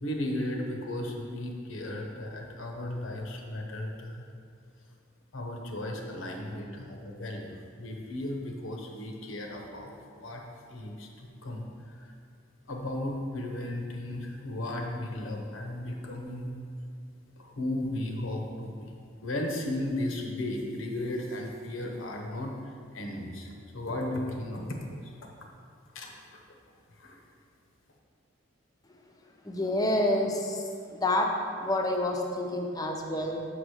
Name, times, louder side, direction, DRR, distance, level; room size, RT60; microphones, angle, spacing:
voice 1, 0.0-4.2 5.3-7.5 7.8-10.4 10.7-11.1 11.4-11.7 12.0-12.1 12.7-16.5 17.4-18.9 19.2-22.5 22.9-25.0 25.9-26.4 27.0-27.2, left 1 dB, 85° left, 1 dB, 1.0 m, -35 dB
voice 2, 29.4-30.6 30.9-31.3 31.6-33.5, left 1 dB, 20° left, 1 dB, 0.7 m, -28 dB
6.1 x 4.9 x 6.3 m, 2.3 s
head